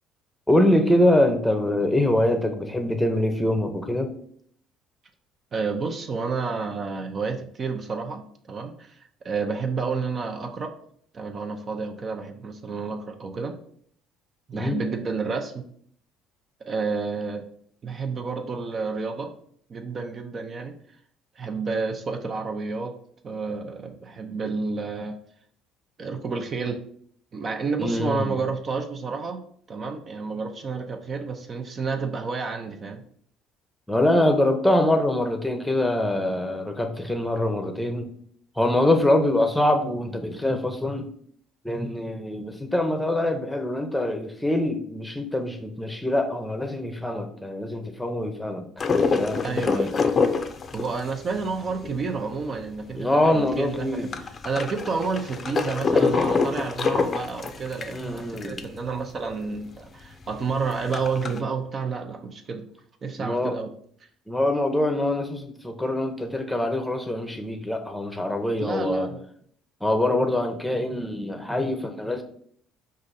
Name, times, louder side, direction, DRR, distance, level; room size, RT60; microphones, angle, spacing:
voice 1, 0.5-4.1 14.5-14.8 27.8-28.4 33.9-38.1 38.6-41.1 41.6-48.6 49.1-49.9 53.0-54.1 57.9-58.7 63.2-63.6 64.3-69.1 69.8-72.2, left 1 dB, 5° left, 5 dB, 0.8 m, -24 dB
voice 2, 5.5-9.0 9.2-10.7 11.1-13.6 14.5-15.6 16.7-17.4 17.8-19.3 19.7-20.7 21.4-22.9 23.2-25.2 26.0-26.8 27.3-29.4 29.7-33.0 49.4-49.9 50.7-54.1 54.4-62.6 63.0-63.7 68.4-69.2, right 4 dB, 40° right, 5 dB, 0.6 m, -30 dB
sound 1, 48.8-52.8 53.2-53.3 53.5-58.8 59.2-59.3 59.5-59.6 60.1-61.4, left 4 dB, 40° left, 0.5 m, -25 dB
5.1 x 2.5 x 4.1 m, 0.62 s
supercardioid pair, 85°, 0 cm